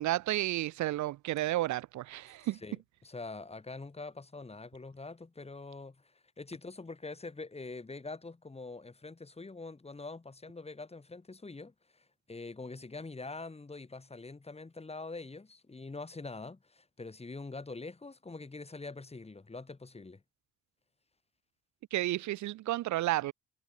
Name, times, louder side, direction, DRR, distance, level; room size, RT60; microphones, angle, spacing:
voice 1, 0.0-2.6 21.9-23.3, right 15 dB, 70° right, 0.6 m, -32 dB
voice 2, 2.5-20.2, left 3 dB, 20° left, 3.3 m, -44 dB
cardioid pair, 90°, 30 cm